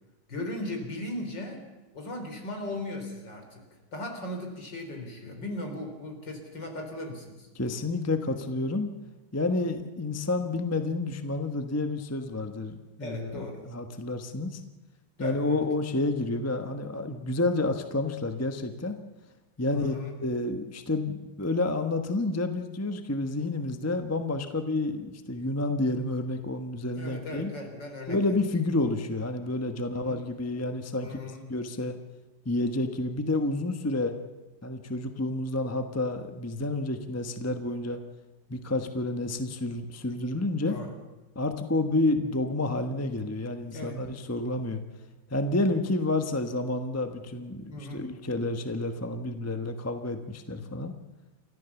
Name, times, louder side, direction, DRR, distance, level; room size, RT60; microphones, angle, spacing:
voice 1, 0.3-1.6 1.9-3.6 3.9-7.5 13.0-13.6 15.2-15.6 19.7-20.1 26.9-28.3 30.0-30.2 31.0-31.4 40.7-40.9 43.7-44.0 47.7-48.1, left 2 dB, 65° left, 4 dB, 4.4 m, -37 dB
voice 2, 7.5-8.9 9.3-14.6 15.2-19.0 19.6-19.9 20.2-27.5 28.1-31.2 31.5-31.9 32.4-34.1 34.6-38.0 38.5-40.8 41.3-44.8 45.3-50.9, left 2 dB, 10° left, 7 dB, 0.9 m, -29 dB
29.5 x 14.0 x 7.1 m, 1.1 s
omnidirectional pair, 2.1 m